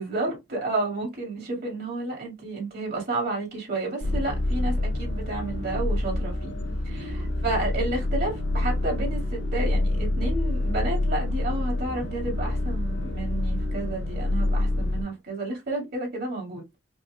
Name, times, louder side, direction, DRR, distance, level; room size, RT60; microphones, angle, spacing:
voice 1, 0.0-6.6 6.8-16.6, right 2 dB, 55° right, 2.0 m, -31 dB
sound 1, 4.0-15.0, left 1 dB, 65° left, 1.7 m, -27 dB
5.2 x 2.9 x 2.2 m
head